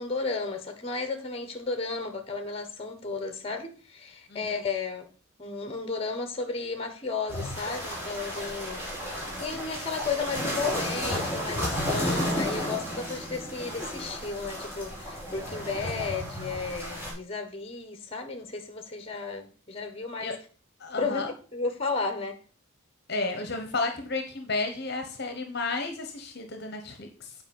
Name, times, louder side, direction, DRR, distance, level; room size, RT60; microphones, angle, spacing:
voice 1, 0.0-5.1 5.4-8.8 9.4-20.3 21.0-22.4, left 4 dB, 30° left, 1.3 m, -33 dB
sound 1, 7.3-17.1, equal, 10° right, 3.2 m, -33 dB
voice 2, 20.8-21.3 23.1-27.3, left 3 dB, 50° left, 1.1 m, -32 dB
8.2 x 5.1 x 5.4 m
head